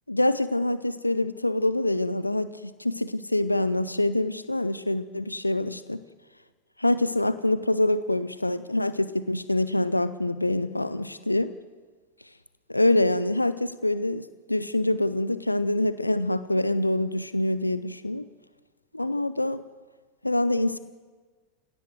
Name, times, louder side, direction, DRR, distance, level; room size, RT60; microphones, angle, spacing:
voice 1, 0.1-6.0 6.8-11.5 12.7-18.2 18.9-19.6 20.2-20.8, left 1 dB, 85° left, 14 dB, 0.7 m, -25 dB
30.0 x 17.0 x 7.7 m, 1.5 s
figure-of-eight pair, 90°, 0 cm